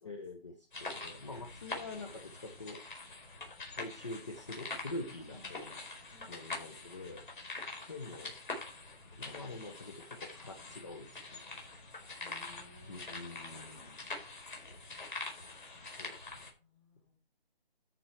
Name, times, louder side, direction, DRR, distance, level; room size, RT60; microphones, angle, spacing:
voice 1, 0.0-2.8 3.7-5.8 6.3-7.2 7.9-8.4 9.2-11.5 12.9-14.0 16.0-16.2, left 2 dB, 30° left, 1.2 m, -45 dB
sound 1, 0.7-16.5, left 3 dB, 50° left, 4.7 m, -45 dB
voice 2, 1.7-2.1 5.3-5.8 6.1-6.8 12.2-13.9 16.5-17.1, left 2 dB, 5° left, 2.1 m, -60 dB
13.5 x 5.9 x 4.6 m
hypercardioid pair, 175°, 32 cm